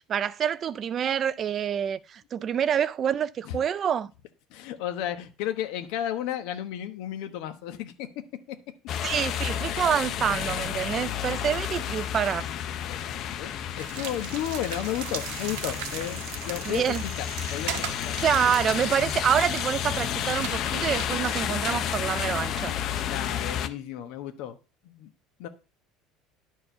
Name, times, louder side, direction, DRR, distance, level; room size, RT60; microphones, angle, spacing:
voice 1, 0.0-4.1 9.0-12.5 16.7-17.0 18.2-22.7, right 8 dB, 30° right, 0.4 m, -27 dB
voice 2, 4.5-8.1 8.5-8.6 12.9-18.1 23.1-24.6 24.8-25.1 25.4-25.5, left 11 dB, 70° left, 1.1 m, -33 dB
sound 1, 8.9-23.7, left 10 dB, 40° left, 0.6 m, -31 dB
sound 2, 13.8-21.5, right 11 dB, 80° right, 1.2 m, -39 dB
11.0 x 4.7 x 5.5 m
cardioid pair, 165°, 0 cm